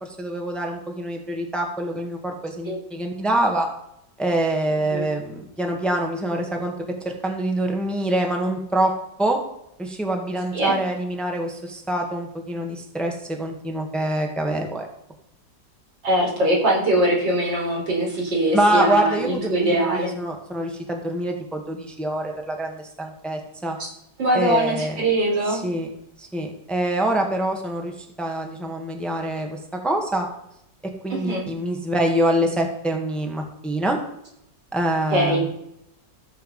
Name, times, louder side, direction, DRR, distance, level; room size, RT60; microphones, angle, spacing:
voice 1, 0.0-3.7 4.2-6.7 7.0-8.9 9.2-9.4 9.8-14.9 18.5-23.8 24.3-25.0 25.5-25.9 26.2-30.3 31.0-34.0 34.7-35.5, right 1 dB, ahead, 2 dB, 1.7 m, -25 dB
voice 2, 4.7-5.0 10.5-10.7 16.0-20.1 23.8-23.9 24.2-25.6 31.1-31.4 35.1-35.4, right 1 dB, 85° right, -2 dB, 4.9 m, -22 dB
14.5 x 7.5 x 5.5 m, 0.78 s
omnidirectional pair, 1.9 m